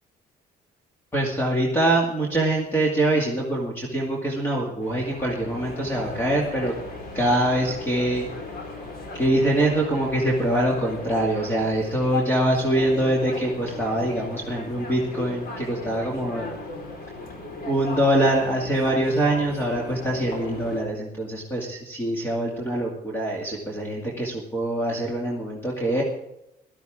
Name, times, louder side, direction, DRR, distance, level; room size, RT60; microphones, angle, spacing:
voice 1, 1.1-6.7 7.1-8.3 9.1-16.5 17.6-26.0, right 1 dB, 15° left, -2 dB, 2.4 m, -24 dB
sound 1, 4.8-20.8, left 2 dB, 75° left, 4.7 m, -37 dB
18.0 x 13.0 x 3.7 m, 0.85 s
cardioid pair, 170°, 17 cm